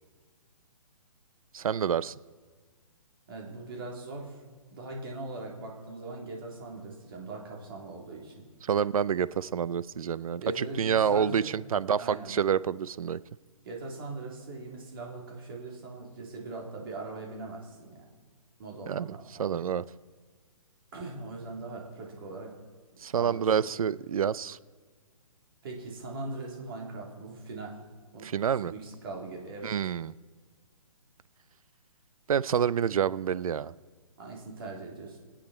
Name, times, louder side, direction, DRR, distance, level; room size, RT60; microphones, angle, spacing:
voice 1, 1.5-2.1 8.6-13.2 18.9-19.1 19.4-19.8 23.0-24.6 28.2-28.7 29.6-30.1 32.3-33.7, right 8 dB, 75° right, 18 dB, 0.5 m, -28 dB
voice 2, 3.3-4.4 4.7-8.5 10.4-11.5 12.0-12.4 13.6-18.2 18.6-19.6 20.9-22.5 22.9-23.7 25.6-27.8 28.1-28.3 28.7-29.7 34.2-35.2, right 3 dB, 40° right, -1 dB, 3.4 m, -41 dB
24.5 x 8.5 x 4.3 m, 1.6 s
hypercardioid pair, 165°, 18 cm